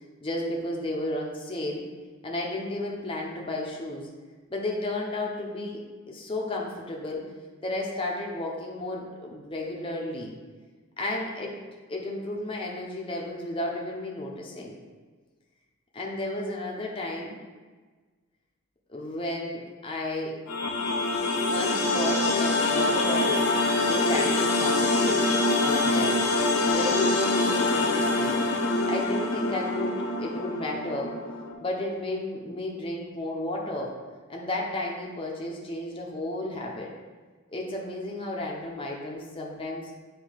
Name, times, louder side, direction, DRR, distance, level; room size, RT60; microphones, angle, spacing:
voice 1, 0.2-1.9 2.2-4.1 4.5-7.2 7.6-10.3 11.0-11.5 11.9-14.8 15.9-17.4 18.9-20.4 21.5-23.5 23.8-26.3 26.7-28.4 28.6-31.1 31.6-33.9 34.3-36.9 37.5-39.9, left 1 dB, 25° left, -2 dB, 0.7 m, -33 dB
sound 1, 20.5-31.5, left 2 dB, 80° left, 0.8 m, -25 dB
7.3 x 2.8 x 5.0 m, 1.4 s
head